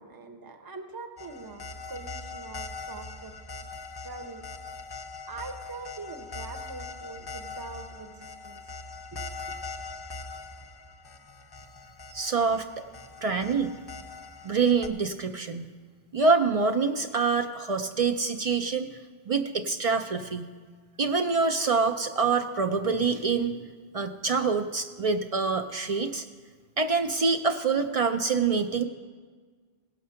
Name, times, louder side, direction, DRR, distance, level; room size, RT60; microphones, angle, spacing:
voice 1, 0.0-3.3 4.0-4.5 5.3-8.7 9.1-9.6, right 3 dB, 25° right, 7 dB, 0.7 m, -43 dB
sound 1, 1.2-14.9, left 3 dB, 30° left, 0.5 m, -41 dB
voice 2, 12.1-12.8 13.2-13.7 14.4-15.7 16.1-18.9 19.3-20.5 21.0-23.6 23.9-26.2 26.8-28.8, right 4 dB, 50° right, 7 dB, 0.4 m, -26 dB
17.0 x 6.6 x 5.6 m, 1.5 s
omnidirectional pair, 1.1 m